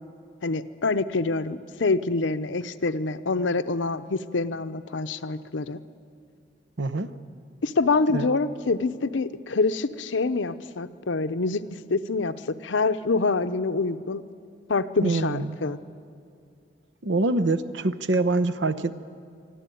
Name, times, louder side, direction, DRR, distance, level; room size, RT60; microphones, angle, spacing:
voice 1, 0.4-5.8 7.6-12.3 12.6-14.2 14.7-15.8, left 3 dB, 85° left, 12 dB, 0.7 m, -26 dB
voice 2, 6.8-7.1 8.1-8.3 15.0-15.6 17.0-18.9, right 2 dB, 75° right, 10 dB, 0.8 m, -25 dB
24.5 x 12.5 x 9.2 m, 2.4 s
head